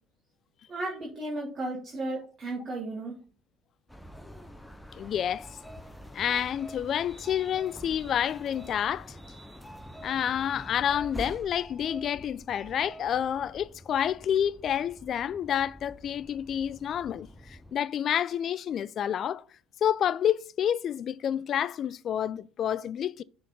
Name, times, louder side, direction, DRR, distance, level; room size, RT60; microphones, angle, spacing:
voice 1, 0.7-3.1, right 2 dB, 35° right, 2.1 m, -34 dB
sound 1, 3.9-17.8, equal, 5° left, 0.8 m, -46 dB
voice 2, 5.0-5.5 6.1-9.1 10.0-19.4 19.8-23.2, left 9 dB, 50° left, 0.3 m, -29 dB
6.4 x 3.9 x 5.2 m
hypercardioid pair, 70°, 0 cm